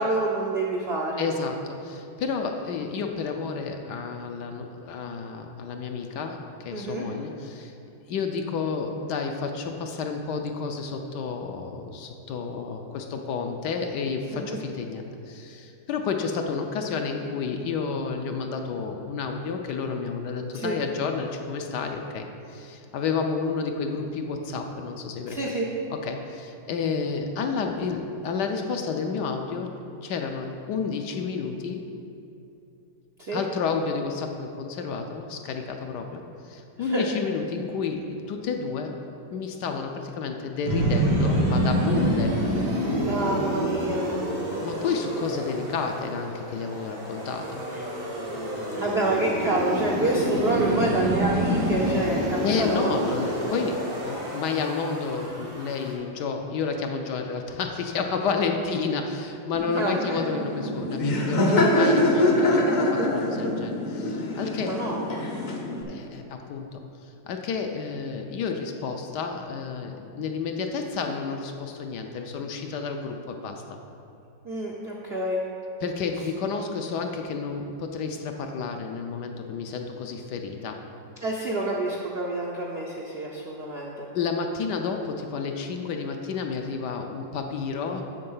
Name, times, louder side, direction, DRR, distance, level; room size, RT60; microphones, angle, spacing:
voice 1, 0.0-1.3 6.7-7.1 14.3-14.6 20.5-20.7 25.3-25.6 33.2-33.4 36.8-37.0 43.0-44.2 47.7-47.8 48.8-53.1 59.8-60.2 64.7-65.1 74.4-75.4 81.2-84.1, right 2 dB, 60° right, -2 dB, 0.6 m, -27 dB
voice 2, 1.2-7.7 8.1-25.5 25.9-29.7 30.0-31.8 33.3-39.0 39.3-42.3 44.6-47.7 52.4-64.8 65.9-73.8 75.8-80.8 84.1-88.0, left 5 dB, 70° left, 4 dB, 1.1 m, -30 dB
up and down, 40.6-55.9, equal, 90° right, 3.0 m, -28 dB
Laughter, 59.5-65.8, left 1 dB, 50° left, 0.5 m, -24 dB
7.7 x 7.0 x 5.5 m, 2.7 s
omnidirectional pair, 2.1 m